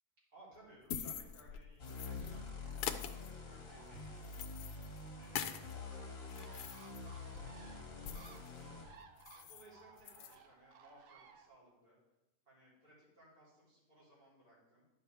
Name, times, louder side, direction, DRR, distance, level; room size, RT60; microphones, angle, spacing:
voice 1, 0.3-4.5 5.2-8.9 9.3-12.0 12.5-14.8, right 1 dB, 90° right, -8 dB, 4.2 m, -62 dB
sound 1, 0.6-2.3 2.7-5.7 6.1-8.5 8.8-8.9 9.2-9.7 10.0-10.4, left 9 dB, 90° left, 1.1 m, -45 dB
sound 2, 1.8-9.0, left 4 dB, 60° left, 1.5 m, -47 dB
Bird, 2.3-11.5, right 5 dB, 65° right, 0.9 m, -61 dB
11.0 x 6.0 x 3.5 m, 0.93 s
omnidirectional pair, 1.6 m